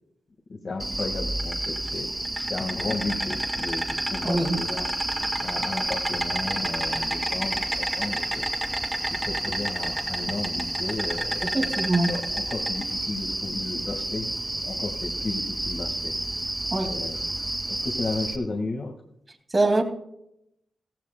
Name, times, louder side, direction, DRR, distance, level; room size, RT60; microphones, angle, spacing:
voice 1, 0.5-2.1 2.5-4.9 5.4-8.5 9.1-11.5 12.1-16.1 16.8-17.2 17.7-18.9, left 3 dB, 50° left, 1.7 m, -34 dB
Insect, 0.8-18.4, right 1 dB, 20° right, 2.3 m, -29 dB
voice 2, 4.2-4.6 11.4-12.2 16.7-17.0 19.5-19.8, right 2 dB, 35° right, 2.2 m, -23 dB
15.5 x 15.5 x 2.2 m
supercardioid pair, 50°, 0 cm